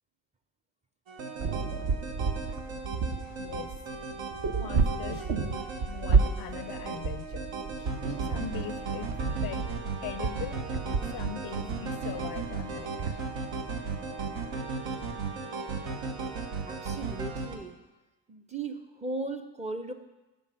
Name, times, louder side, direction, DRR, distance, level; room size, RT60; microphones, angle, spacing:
sound 1, 1.1-17.6, right 4 dB, 75° right, 1.1 m, -36 dB
sound 2, 1.4-13.1, right 5 dB, 50° right, 0.8 m, -31 dB
voice 1, 3.2-3.7 4.6-7.5 7.8-9.1 9.4-9.7 10.0-10.6 11.1-13.2, left 11 dB, 50° left, 12 dB, 0.4 m, -41 dB
voice 2, 16.7-17.7 18.3-19.9, right 3 dB, 15° right, 6 dB, 0.6 m, -37 dB
5.2 x 5.2 x 6.3 m, 1.1 s
hypercardioid pair, 60°, 50 cm